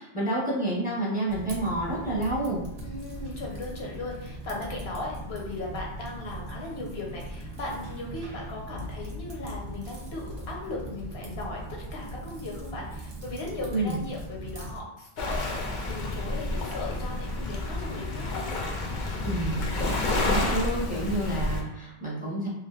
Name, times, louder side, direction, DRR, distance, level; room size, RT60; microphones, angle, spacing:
voice 1, 0.0-2.6 13.7-14.0 19.2-19.7 20.3-22.5, right 1 dB, 10° right, -7 dB, 0.8 m, -29 dB
Typing, 1.3-14.8, right 1 dB, 80° right, 1.0 m, -39 dB
voice 2, 2.8-11.6 11.9-18.4, left 2 dB, 80° left, -2 dB, 1.0 m, -37 dB
Waves surf, 15.2-21.6, left 2 dB, 60° left, 0.6 m, -29 dB
3.2 x 2.5 x 2.4 m, 0.87 s
omnidirectional pair, 1.0 m